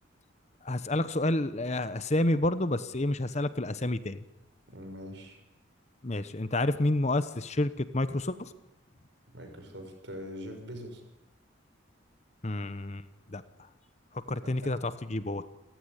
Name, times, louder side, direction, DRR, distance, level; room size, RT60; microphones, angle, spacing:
voice 1, 0.6-4.2 6.0-8.5 12.4-13.0 13.3-13.4 14.3-15.4, left 1 dB, 35° left, 13 dB, 1.0 m, -29 dB
voice 2, 4.7-5.4 9.3-11.0 14.4-14.7, equal, 65° right, 5 dB, 6.4 m, -43 dB
29.5 x 15.5 x 10.0 m, 0.97 s
head